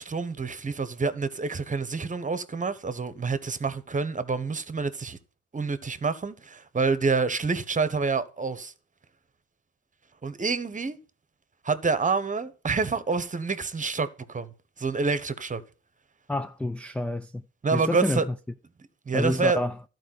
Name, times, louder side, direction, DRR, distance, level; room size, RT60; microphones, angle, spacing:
voice 1, 0.0-5.2 5.5-8.7 10.2-11.0 11.6-15.6 17.6-18.3 19.1-19.6, right 4 dB, 25° right, 1.2 m, -27 dB
voice 2, 16.3-17.4 17.7-18.2 19.1-19.7, left 1 dB, 5° left, 0.4 m, -28 dB
12.5 x 4.8 x 7.7 m
cardioid pair, 90°, 30 cm